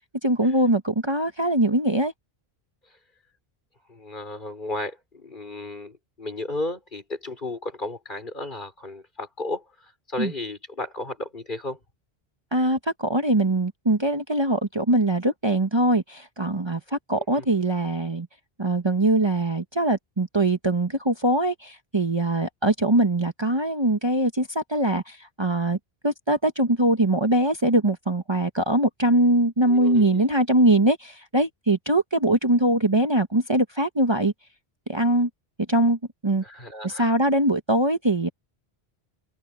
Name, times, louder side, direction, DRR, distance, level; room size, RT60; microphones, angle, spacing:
voice 1, 0.2-2.1 10.2-10.3 12.5-18.3 18.6-25.8 26.0-34.3 34.9-35.3 35.7-36.4 36.8-38.3, right 1 dB, 25° right, 1.2 m, -22 dB
voice 2, 3.9-11.8 17.3-17.4 29.7-30.2 36.4-37.1, left 2 dB, 50° left, 4.5 m, -34 dB
omnidirectional pair, 1.1 m